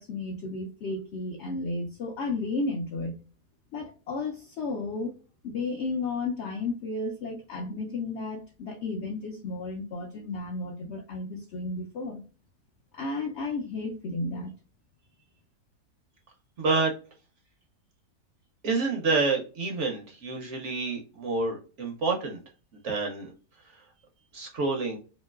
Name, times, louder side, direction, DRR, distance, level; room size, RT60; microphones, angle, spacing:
voice 1, 0.0-3.2 3.7-5.2 5.4-12.2 12.9-14.5, left 3 dB, 80° left, 0.6 m, -33 dB
voice 2, 16.6-16.9 18.6-22.4 22.8-23.3 24.3-25.0, right 3 dB, 65° right, 0.8 m, -28 dB
3.0 x 2.7 x 2.3 m
omnidirectional pair, 1.7 m